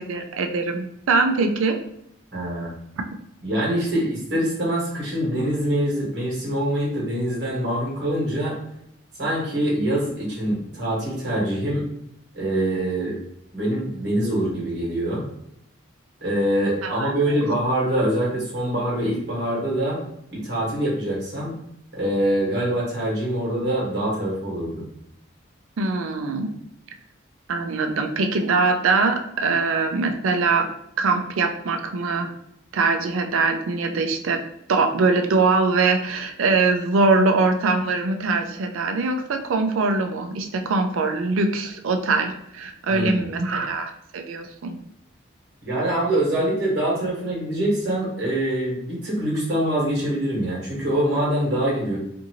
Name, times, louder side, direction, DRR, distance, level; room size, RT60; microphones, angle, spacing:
voice 1, 0.0-1.8 16.8-17.4 25.8-26.5 27.5-30.7 31.0-32.3 32.7-34.4 34.7-44.8, right 3 dB, 90° right, 5 dB, 0.4 m, -22 dB
voice 2, 2.3-2.7 3.4-8.6 9.2-11.8 12.3-13.2 13.5-15.2 16.2-20.0 20.3-21.5 21.9-24.8 42.9-43.3 45.6-52.0, right 1 dB, 55° right, -5 dB, 1.2 m, -24 dB
2.6 x 2.6 x 2.8 m, 0.75 s
head